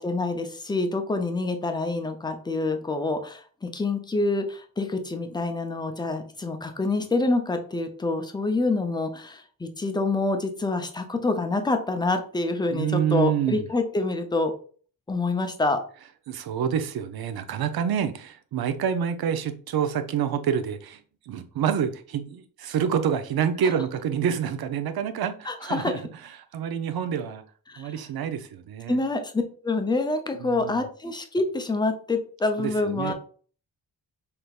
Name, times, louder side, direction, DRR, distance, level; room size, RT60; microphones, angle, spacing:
voice 1, 0.0-14.5 15.1-15.8 25.5-25.9 27.7-27.9 28.9-33.1, left 3 dB, 10° left, 0.5 m, -27 dB
voice 2, 12.7-13.7 16.3-21.0 21.3-26.0 26.5-27.4 27.8-29.0 30.3-30.8 32.6-33.1, right 8 dB, 70° right, 0.7 m, -27 dB
5.8 x 3.4 x 2.4 m
wide cardioid pair, 170°, 39 cm